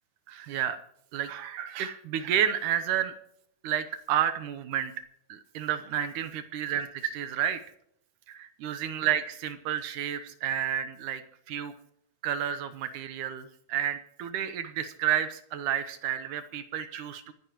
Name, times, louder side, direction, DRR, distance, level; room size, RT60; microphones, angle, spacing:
voice 1, 0.3-0.8 1.1-3.2 3.6-4.9 5.3-7.6 8.3-11.2 11.5-11.7 12.2-17.3, right 10 dB, 70° right, 11 dB, 2.0 m, -30 dB
26.5 x 10.5 x 3.0 m, 0.73 s
omnidirectional pair, 4.3 m